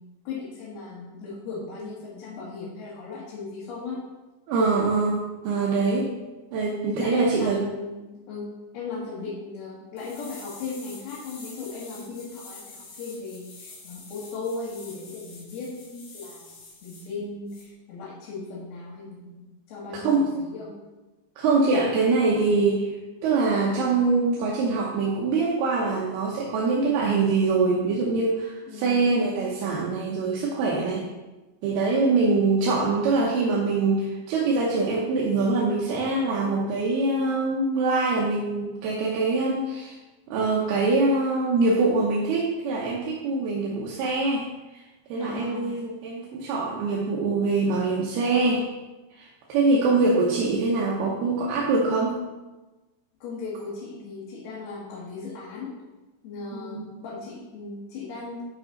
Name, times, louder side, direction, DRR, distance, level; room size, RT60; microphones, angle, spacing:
voice 1, 0.0-4.0 6.1-6.2 6.9-8.5 8.7-20.7 28.7-29.0 45.2-45.7 53.2-55.7 56.2-58.4, left 3 dB, 80° left, -8 dB, 3.7 m, -37 dB
voice 2, 4.5-6.1 6.5-7.6 19.9-20.5 21.4-22.9 23.2-31.1 31.6-40.0 40.3-44.5 44.7-44.8 45.1-48.7 49.2-52.2 56.5-56.8, right 3 dB, 85° right, -3 dB, 3.0 m, -24 dB
sound 1, 10.0-17.1 17.5-17.6, left 3 dB, 60° left, 3.2 m, -46 dB
10.5 x 6.0 x 3.9 m, 1.1 s
omnidirectional pair, 4.4 m